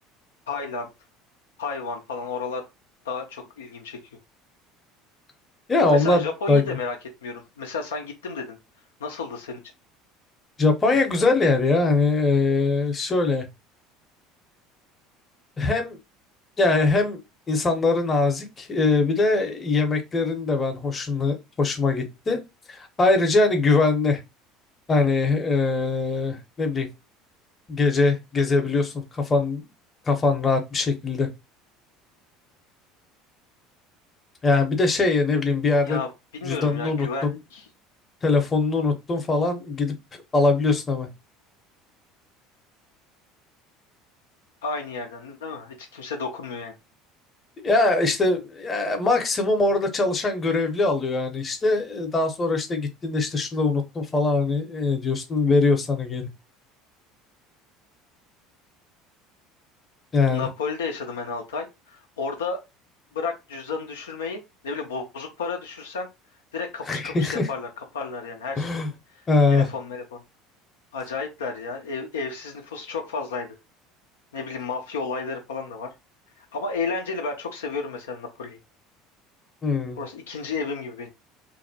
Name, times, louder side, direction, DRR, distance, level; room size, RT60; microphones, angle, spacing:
voice 1, 0.5-0.9 1.6-2.6 3.0-4.0 5.9-7.0 7.2-8.6 9.0-9.6 35.9-36.1 36.3-37.6 44.6-46.7 60.3-62.6 63.1-66.1 66.5-68.8 69.1-70.2 70.9-73.5 74.3-75.9 76.4-78.6 80.0-81.1, left 4 dB, 80° left, 0.5 m, -32 dB
voice 2, 5.7-6.8 10.6-13.5 15.6-16.0 16.6-17.2 17.5-22.4 22.7-24.2 24.9-26.9 27.7-29.6 30.1-31.3 34.4-36.0 36.4-37.3 38.2-40.0 40.3-41.1 47.6-56.3 60.1-60.5 66.9-67.5 68.6-68.9 69.3-69.7 79.6-80.0, left 3 dB, 30° left, 0.8 m, -22 dB
2.6 x 2.0 x 2.7 m
hypercardioid pair, 70°, 0 cm